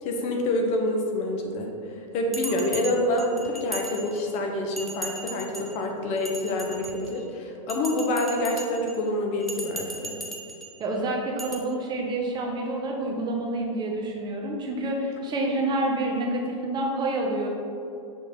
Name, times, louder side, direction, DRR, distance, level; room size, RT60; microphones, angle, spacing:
voice 1, 0.0-10.2, left 1 dB, 40° left, 2 dB, 0.9 m, -27 dB
Bell, 2.3-4.4 4.8-5.7 6.2-7.2 7.7-8.9 9.4-10.7 11.4-11.6, right 2 dB, ahead, 0.7 m, -37 dB
voice 2, 10.8-17.5, right 2 dB, 25° right, 0 dB, 0.9 m, -28 dB
6.2 x 3.3 x 5.3 m, 2.6 s
hypercardioid pair, 120°, 18 cm